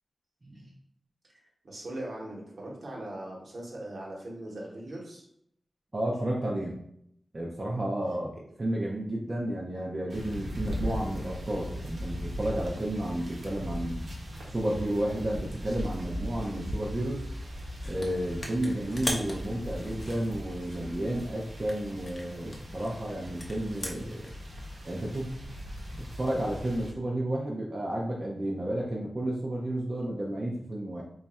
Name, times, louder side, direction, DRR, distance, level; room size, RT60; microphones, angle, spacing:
voice 1, 1.6-5.3 8.3-8.4, right 1 dB, 65° right, -3 dB, 1.0 m, -40 dB
voice 2, 5.9-6.8 7.3-8.3 8.6-14.0 14.5-17.2 17.8-24.3 24.8-25.3 25.9-31.0, right 1 dB, 35° right, -4 dB, 0.5 m, -32 dB
sound 1, 10.1-26.9, equal, 85° right, 0.8 m, -39 dB
sound 2, 17.8-18.1 18.4-21.2 21.6-24.3, left 1 dB, 40° left, 0.6 m, -39 dB
3.1 x 2.3 x 4.1 m, 0.73 s
wide cardioid pair, 120°, 0 cm